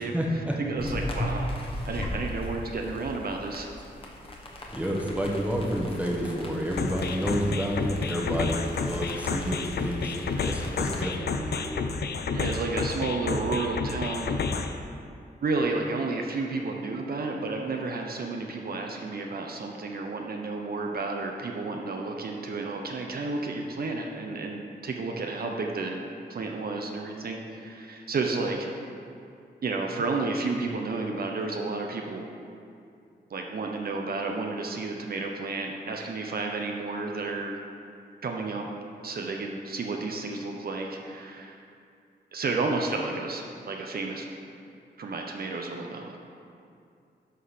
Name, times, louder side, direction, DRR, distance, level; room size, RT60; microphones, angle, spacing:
voice 1, 0.0-0.6 4.7-11.9, equal, 5° right, -1 dB, 1.0 m, -30 dB
voice 2, 0.6-1.5 1.9-3.7 12.3-14.5 15.4-28.7 29.6-32.3 33.3-37.6 38.2-38.7 39.0-41.6 42.3-44.2 45.0-46.2, right 3 dB, 55° right, 1 dB, 0.8 m, -31 dB
sound 1, 0.8-11.0, left 1 dB, 30° left, 1.2 m, -37 dB
sound 2, 6.8-14.8, left 5 dB, 65° left, 0.5 m, -30 dB
11.0 x 3.9 x 6.6 m, 2.5 s
wide cardioid pair, 145°, 18 cm